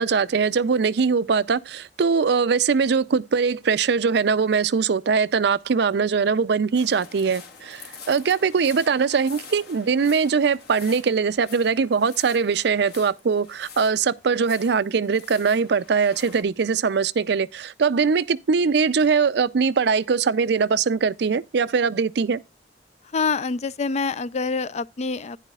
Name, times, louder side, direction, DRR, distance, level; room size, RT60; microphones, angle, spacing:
voice 1, 0.0-22.4, right 5 dB, 70° right, 0.5 m, -21 dB
sound 1, 6.7-16.4, left 6 dB, 65° left, 2.3 m, -45 dB
voice 2, 23.1-25.4, left 4 dB, 40° left, 0.4 m, -26 dB
10.5 x 9.9 x 2.3 m
head